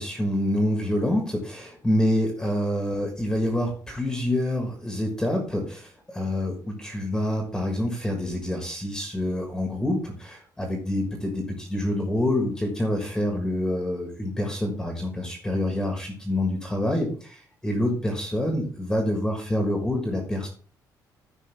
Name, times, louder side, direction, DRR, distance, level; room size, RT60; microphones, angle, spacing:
voice 1, 0.0-20.5, left 1 dB, 5° left, 2 dB, 1.6 m, -27 dB
13.5 x 5.3 x 3.4 m, 0.41 s
cardioid pair, 180°, 7 cm